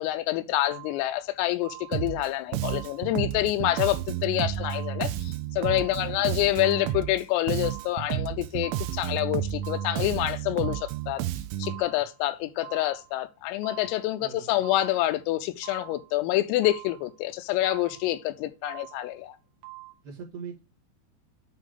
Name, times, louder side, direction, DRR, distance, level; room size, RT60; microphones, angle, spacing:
voice 1, 0.0-11.2 11.6-19.4, left 15 dB, 85° left, 3.2 m, -27 dB
sound 1, 0.6-1.2 1.6-2.2 2.6-3.2 3.6-4.2 4.6-5.2 5.6-6.2 6.6-7.2 7.6-8.2 8.6-9.2 9.6-10.2 10.6-11.2 11.6-12.2 12.6-13.2 13.6-14.2 14.6-15.2 15.6-16.2 16.6-17.2 17.6-18.2 18.6-19.2 19.6-19.9, right 20 dB, 70° right, 3.0 m, -46 dB
Bass guitar, 1.9-2.3 2.5-7.2 7.5-11.8, right 12 dB, 90° right, 3.3 m, -31 dB
voice 2, 5.7-6.6 14.2-14.6 20.0-20.6, right 6 dB, 50° right, 1.6 m, -43 dB
9.3 x 3.4 x 3.8 m
omnidirectional pair, 6.0 m